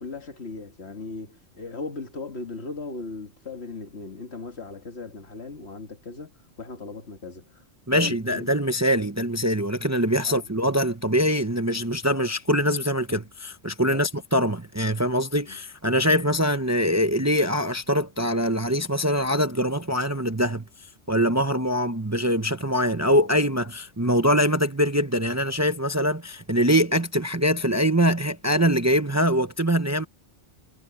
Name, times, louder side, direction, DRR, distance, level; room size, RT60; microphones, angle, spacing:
voice 1, 0.0-6.3 6.6-7.6 7.9-8.5 10.3-10.5 13.9-14.0 15.4-15.6, left 3 dB, 65° left, 2.1 m, -37 dB
voice 2, 7.9-20.7 21.1-30.1, equal, 15° right, 0.8 m, -23 dB
omnidirectional pair, 1.2 m